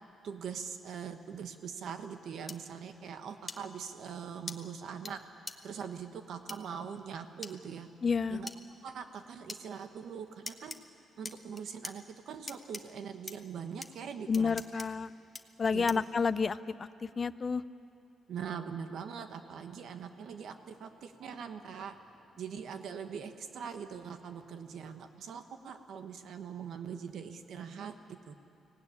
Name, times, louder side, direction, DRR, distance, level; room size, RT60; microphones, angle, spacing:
voice 1, 0.2-5.2 5.6-7.9 8.3-8.5 8.8-10.8 11.2-14.8 15.7-16.0 18.3-22.0 22.4-28.3, right 7 dB, 60° right, 8 dB, 1.1 m, -42 dB
sound 1, 2.5-2.6 3.5-3.6 4.5-4.6 5.1-5.2 5.5-5.6 6.5-6.6 7.4-7.5 8.5-8.6 9.5-9.6 10.5-10.8 11.2-11.9 12.5-12.8 13.3-13.4 13.8-13.9 14.3-14.9 15.3-15.4 15.9-16.1, left 2 dB, 10° left, 0.9 m, -41 dB
voice 2, 8.0-8.4 14.3-15.1 15.6-17.6, left 5 dB, 30° left, 14 dB, 0.5 m, -30 dB
sound 2, 19.1-25.1, equal, 25° right, 5.7 m, -67 dB
24.0 x 17.5 x 9.7 m, 2.6 s
cardioid pair, 170°, 0 cm